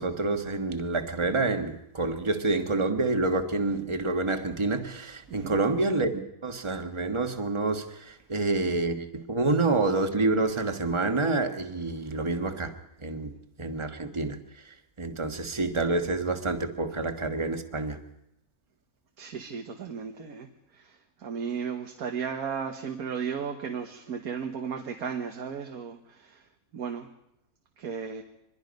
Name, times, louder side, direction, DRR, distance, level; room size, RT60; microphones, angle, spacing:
voice 1, 0.0-12.7 13.0-13.3 13.6-14.4 15.0-18.0, right 3 dB, 20° right, 1.3 m, -28 dB
voice 2, 19.2-26.4 26.7-27.1 27.8-28.2, right 6 dB, 85° right, 1.7 m, -35 dB
24.5 x 21.5 x 5.3 m
omnidirectional pair, 1.5 m